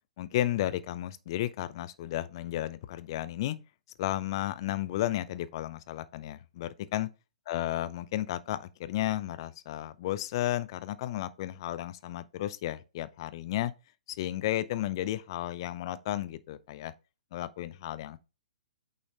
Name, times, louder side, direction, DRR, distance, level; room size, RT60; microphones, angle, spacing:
voice 1, 0.2-3.6 4.0-7.1 7.5-13.7 14.1-16.9 17.3-18.2, left 14 dB, 40° left, 0.6 m, -33 dB
8.8 x 4.0 x 3.2 m
figure-of-eight pair, 120°, 4 cm